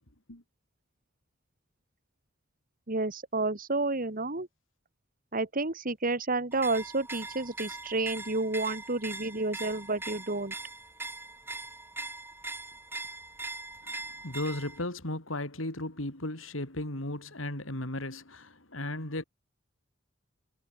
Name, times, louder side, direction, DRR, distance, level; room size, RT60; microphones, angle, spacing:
voice 1, 2.9-4.5 5.3-10.5, right 2 dB, 45° right, 2.4 m, -30 dB
sound 1, 6.5-14.8, right 3 dB, 10° right, 5.6 m, -41 dB
voice 2, 14.2-19.2, left 1 dB, 85° left, 4.8 m, -35 dB
head